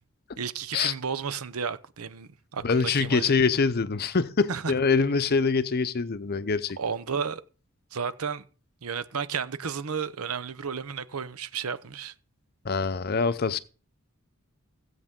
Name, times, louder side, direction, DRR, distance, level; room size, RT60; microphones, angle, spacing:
voice 1, 0.4-3.3 4.5-4.7 6.8-7.4 7.9-8.4 8.8-12.1, right 6 dB, 85° right, 0.8 m, -32 dB
voice 2, 2.6-6.8 12.6-13.6, left 4 dB, 45° left, 0.6 m, -24 dB
16.0 x 8.0 x 3.7 m
head